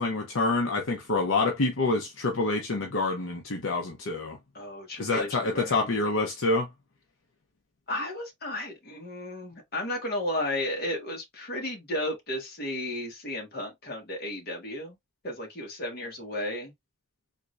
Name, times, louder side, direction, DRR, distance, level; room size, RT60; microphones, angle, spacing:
voice 1, 0.0-4.4 5.0-6.7, left 3 dB, 70° left, 0.7 m, -27 dB
voice 2, 4.5-5.9 7.9-15.0 15.2-16.7, left 1 dB, 50° left, 1.4 m, -33 dB
3.7 x 3.1 x 2.5 m
head